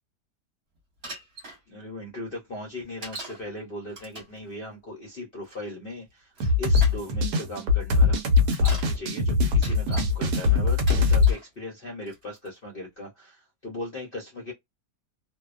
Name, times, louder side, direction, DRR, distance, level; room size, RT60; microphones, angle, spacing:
Bicycle, 1.0-1.6 3.0-3.4 3.9-4.4 5.5-5.6 6.4-7.0 8.3-8.9 9.4-10.1 10.7-11.5 12.1-12.5, right 2 dB, 45° right, 1.2 m, -39 dB
voice 1, 1.7-6.3 6.6-8.2 8.6-14.5, left 1 dB, 55° left, 0.6 m, -38 dB
sound 1, 6.4-11.3, left 4 dB, 70° right, 1.2 m, -21 dB
2.7 x 2.1 x 2.3 m
omnidirectional pair, 1.8 m